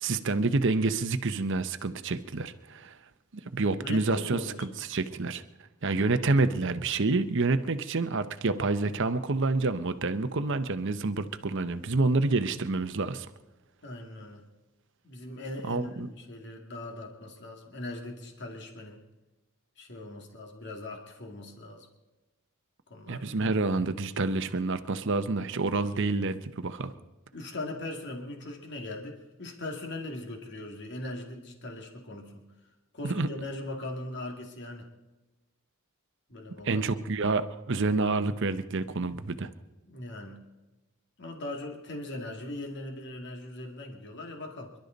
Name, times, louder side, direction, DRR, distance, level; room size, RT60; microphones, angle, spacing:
voice 1, 0.0-2.9 3.5-5.4 5.8-13.3 15.7-16.1 23.1-26.9 33.0-33.3 36.6-39.5, right 3 dB, 55° right, 10 dB, 0.8 m, -28 dB
voice 2, 3.8-4.7 5.9-6.0 13.8-14.4 15.0-19.0 19.8-21.9 22.9-23.2 27.3-32.5 32.9-34.9 36.3-36.8 39.9-40.4 41.2-44.7, left 1 dB, 55° left, 2 dB, 2.3 m, -40 dB
27.5 x 12.0 x 4.0 m, 1.1 s
head